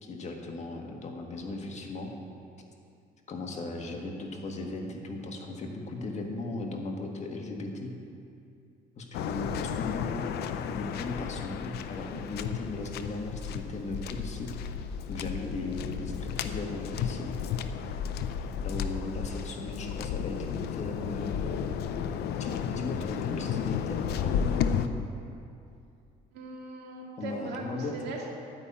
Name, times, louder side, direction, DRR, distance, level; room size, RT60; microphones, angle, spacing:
voice 1, 0.0-2.1 3.3-7.9 9.0-14.5 15.1-17.3 18.6-21.7 22.4-24.9 27.2-28.0, left 2 dB, 40° left, 1 dB, 1.6 m, -37 dB
Waves surf, 9.1-24.9, left 8 dB, 75° left, 0.6 m, -33 dB
voice 2, 26.3-28.3, right 2 dB, 80° right, -1 dB, 2.0 m, -39 dB
11.5 x 5.6 x 8.5 m, 2.5 s
cardioid pair, 110°, 17 cm